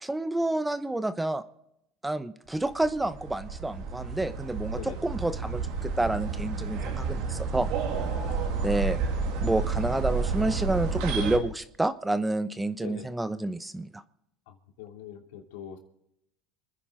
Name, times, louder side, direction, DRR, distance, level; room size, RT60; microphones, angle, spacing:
voice 1, 0.0-1.4 2.0-7.7 8.6-9.0 9.4-14.0, right 2 dB, 10° right, 12 dB, 0.9 m, -29 dB
sound 1, 2.5-11.4, right 5 dB, 70° right, 3.2 m, -31 dB
voice 2, 8.3-8.8 12.8-13.1 14.5-15.8, left 8 dB, 80° left, 3 dB, 2.8 m, -43 dB
27.0 x 10.0 x 3.8 m, 0.80 s
supercardioid pair, 105°, 0 cm